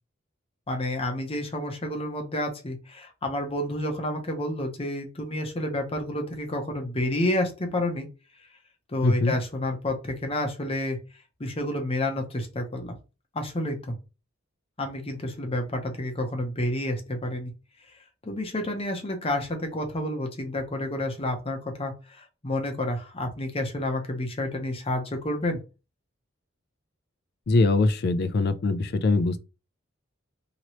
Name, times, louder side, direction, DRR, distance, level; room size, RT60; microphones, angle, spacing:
voice 1, 0.7-8.1 8.9-11.0 11.4-12.9 13.3-14.0 14.8-17.5 18.2-25.6, left 1 dB, 30° left, 0.7 m, -30 dB
voice 2, 9.0-9.3 27.5-29.4, left 3 dB, 50° left, 0.4 m, -22 dB
2.9 x 2.9 x 3.0 m
head